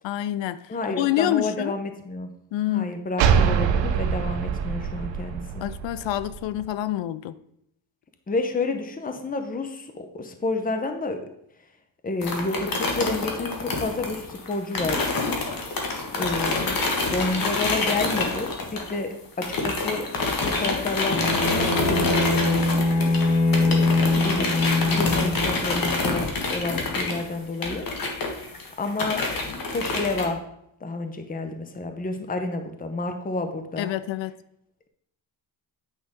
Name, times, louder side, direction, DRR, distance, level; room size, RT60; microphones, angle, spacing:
voice 1, 0.0-1.7 2.5-2.9 5.6-7.4 33.8-34.3, left 13 dB, 80° left, 15 dB, 0.6 m, -27 dB
voice 2, 0.7-2.3 2.7-5.6 8.3-11.2 12.0-15.1 16.2-16.8 17.1-20.1 20.4-22.8 23.6-24.5 24.8-27.9 28.8-29.3 29.7-30.4 30.8-33.9, left 3 dB, 20° left, 6 dB, 0.8 m, -30 dB
sound 1, 3.2-6.7, right 7 dB, 85° right, 0.9 m, -24 dB
sound 2, 12.2-19.1 19.4-30.3, left 3 dB, 50° left, 1.7 m, -27 dB
Bowed string instrument, 21.1-25.6, left 2 dB, 65° left, 1.7 m, -22 dB
9.0 x 5.7 x 3.7 m, 0.76 s
cardioid pair, 105°, 44 cm